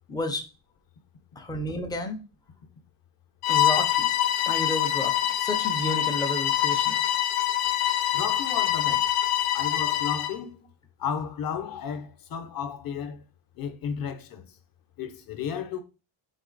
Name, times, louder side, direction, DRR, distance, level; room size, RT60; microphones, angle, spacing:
voice 1, 0.1-0.5 1.4-2.2 3.5-4.1 4.4-7.0, left 1 dB, 10° left, 0.3 m, -31 dB
Bowed string instrument, 3.4-10.4, left 12 dB, 90° left, 0.6 m, -25 dB
voice 2, 8.1-9.1 9.5-10.7 11.0-13.2 13.6-14.4 15.0-15.8, left 7 dB, 45° left, 0.7 m, -33 dB
4.1 x 2.8 x 3.8 m
cardioid pair, 150°, 50 cm